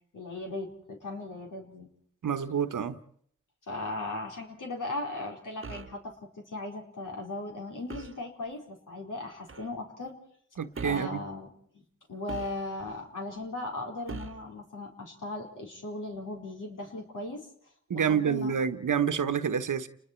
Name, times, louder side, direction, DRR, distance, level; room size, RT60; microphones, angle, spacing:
voice 1, 0.1-1.9 3.7-10.2 10.8-11.5 11.7-11.8 12.1-17.5 17.9-18.5, left 2 dB, 80° left, 4.4 m, -37 dB
voice 2, 2.2-3.0 10.6-11.2 17.9-19.9, right 7 dB, 85° right, 1.2 m, -28 dB
sound 1, 5.6-6.0 7.9-8.2 9.5-9.7 10.7-11.2 12.3-12.9 14.1-14.5, right 4 dB, 45° right, 1.0 m, -41 dB
30.0 x 20.5 x 4.6 m
cardioid pair, 45°, 31 cm